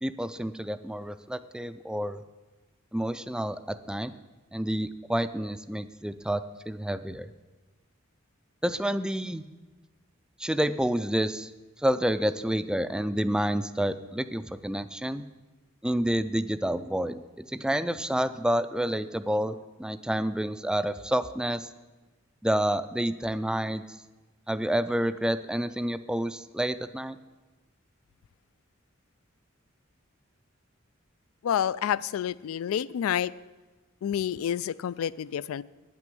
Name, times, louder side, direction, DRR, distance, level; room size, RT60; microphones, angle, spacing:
voice 1, 0.0-2.2 2.9-4.1 4.5-7.3 8.6-9.4 10.4-11.5 11.8-15.2 15.8-21.7 22.4-23.8 24.5-27.2, right 1 dB, 5° right, 12 dB, 0.3 m, -29 dB
voice 2, 31.4-33.3 34.0-35.6, left 9 dB, 85° left, 20 dB, 0.3 m, -29 dB
9.3 x 6.1 x 7.7 m, 1.2 s
head